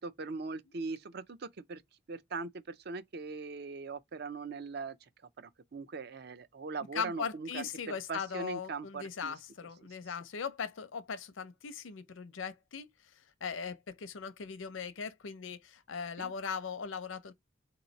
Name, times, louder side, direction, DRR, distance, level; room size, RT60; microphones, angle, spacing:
voice 1, 0.0-1.8 2.1-5.0 5.4-9.3 16.2-16.3, right 4 dB, 55° right, 0.5 m, -40 dB
voice 2, 6.9-12.9 13.4-17.3, left 6 dB, 80° left, 0.6 m, -39 dB
3.8 x 3.0 x 3.9 m
head